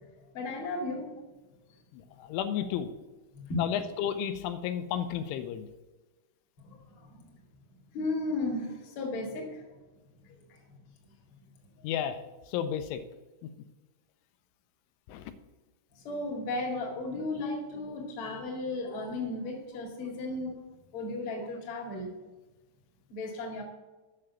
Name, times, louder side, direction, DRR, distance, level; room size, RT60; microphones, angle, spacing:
voice 1, 0.3-1.1 3.3-3.6 6.6-7.2 7.9-9.6 16.0-20.6 20.9-22.1 23.1-23.6, left 2 dB, 45° left, 0 dB, 1.9 m, -35 dB
voice 2, 1.9-2.9 3.6-5.7 11.8-12.2 12.5-13.0 15.1-15.2 18.9-19.0, left 9 dB, 90° left, 10 dB, 3.1 m, -32 dB
7.7 x 6.7 x 7.1 m, 1.2 s
omnidirectional pair, 5.5 m